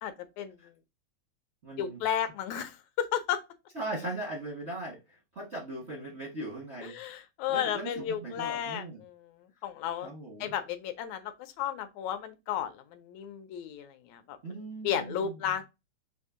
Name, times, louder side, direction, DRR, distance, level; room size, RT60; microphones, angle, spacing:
voice 1, 0.0-0.7 1.8-3.4 6.9-10.1 10.4-14.4 14.8-15.6, left 9 dB, 80° left, 1.9 m, -33 dB
voice 2, 1.6-2.0 3.7-7.0 7.5-9.0 10.0-10.5 14.4-15.6, right 2 dB, 55° right, 0.7 m, -39 dB
4.9 x 2.6 x 3.6 m
omnidirectional pair, 3.3 m